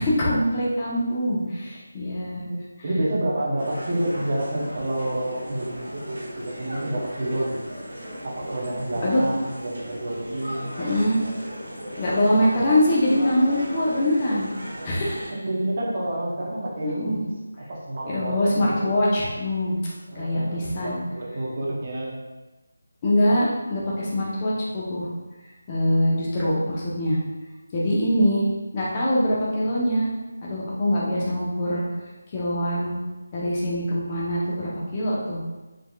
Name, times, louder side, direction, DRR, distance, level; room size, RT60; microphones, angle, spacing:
voice 1, 0.0-2.4 9.0-9.2 10.8-11.2 12.0-14.5 14.8-15.3 16.8-17.2 18.1-19.8 20.1-21.0 23.0-25.1 25.7-27.2 27.7-28.5 28.7-30.1 30.4-31.8 32.3-32.9 33.3-35.4, left 1 dB, 25° left, -6 dB, 0.7 m, -23 dB
voice 2, 2.5-7.6 8.2-10.8 15.3-18.9 20.1-22.2, right 1 dB, 35° right, -5 dB, 0.8 m, -29 dB
sound 1, 3.6-15.3, equal, 70° right, 1.1 m, -37 dB
3.6 x 2.9 x 2.3 m, 1.1 s
figure-of-eight pair, 170°, 0 cm